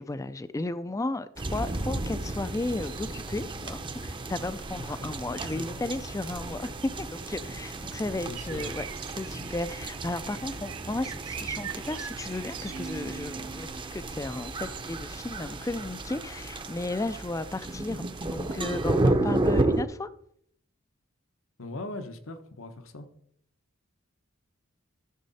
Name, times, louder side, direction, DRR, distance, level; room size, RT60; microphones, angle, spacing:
voice 1, 0.0-8.9 9.1-20.1, left 2 dB, 15° left, 0.4 m, -34 dB
sound 1, 1.4-19.8, right 2 dB, 25° right, 0.7 m, -32 dB
voice 2, 4.8-5.2 5.5-5.9 8.3-8.7 21.6-23.1, left 2 dB, 75° left, 1.1 m, -40 dB
sound 2, 8.4-13.4, right 9 dB, 80° right, 0.9 m, -42 dB
Keyboard (musical), 12.7-14.5, right 4 dB, 55° right, 0.9 m, -43 dB
14.0 x 6.5 x 4.1 m
head